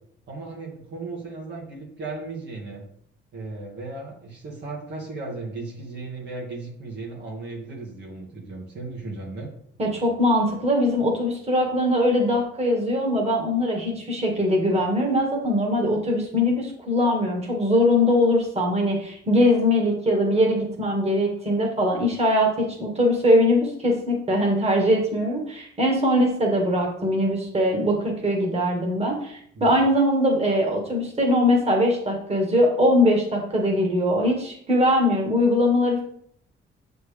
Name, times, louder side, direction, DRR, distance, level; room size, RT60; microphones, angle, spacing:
voice 1, 0.3-2.8 3.3-9.5 29.5-29.8, right 3 dB, 60° right, -2 dB, 1.7 m, -36 dB
voice 2, 9.8-36.0, left 1 dB, 30° right, 0 dB, 1.9 m, -21 dB
7.0 x 4.4 x 3.4 m, 0.66 s
cardioid pair, 90°, 20 cm